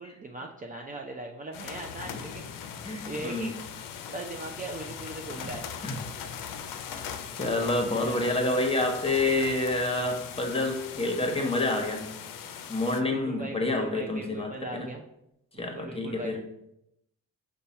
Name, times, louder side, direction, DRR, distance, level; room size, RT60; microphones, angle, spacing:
voice 1, 0.0-2.7 3.1-3.5 4.1-5.6 8.0-8.3 13.1-15.0 15.5-16.4, right 2 dB, 20° right, 1 dB, 0.6 m, -39 dB
sound 1, 1.5-13.0, left 7 dB, 65° left, 0.6 m, -40 dB
voice 2, 2.8-3.5 5.8-6.0 7.3-12.1 12.7-14.9 15.6-16.4, left 2 dB, 15° left, 3 dB, 1.1 m, -28 dB
5.3 x 2.4 x 4.1 m, 0.81 s
hypercardioid pair, 45°, 36 cm